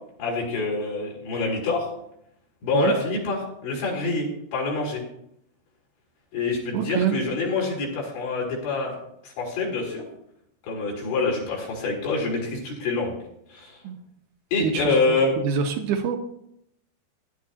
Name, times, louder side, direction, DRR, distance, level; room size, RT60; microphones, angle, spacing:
voice 1, 0.2-1.9 2.6-5.0 6.3-9.0 9.2-10.0 10.7-13.2 13.5-13.8 14.5-15.3, left 3 dB, 75° left, -3 dB, 5.8 m, -26 dB
voice 2, 6.7-7.1 13.8-14.0 14.6-15.2 15.4-16.2, right 6 dB, 85° right, 4 dB, 1.8 m, -25 dB
19.5 x 11.0 x 2.9 m, 0.76 s
omnidirectional pair, 5.1 m